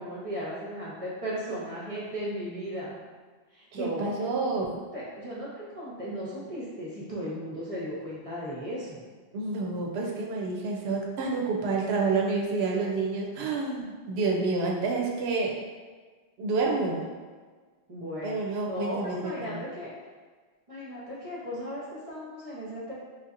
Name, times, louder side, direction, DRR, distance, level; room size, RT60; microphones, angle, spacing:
voice 1, 0.0-3.0 3.5-4.1 4.9-9.0 17.9-19.9 20.7-22.9, equal, 35° right, -7 dB, 0.8 m, -36 dB
voice 2, 3.7-4.8 9.3-15.6 16.4-17.1 18.2-19.6, right 3 dB, 75° right, -1 dB, 0.8 m, -29 dB
3.7 x 2.7 x 2.5 m, 1.4 s
omnidirectional pair, 1.1 m